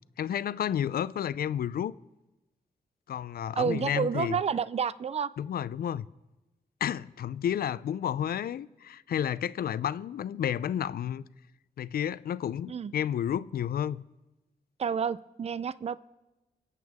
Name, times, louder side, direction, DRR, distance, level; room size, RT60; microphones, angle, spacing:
voice 1, 0.2-1.9 3.1-4.4 5.4-6.0 6.8-11.2 11.8-14.0, left 9 dB, 70° left, 0.5 m, -31 dB
voice 2, 3.6-5.3 12.7-12.9 14.8-16.0, right 6 dB, 40° right, 0.5 m, -29 dB
24.5 x 8.4 x 3.6 m
supercardioid pair, 50°, 16 cm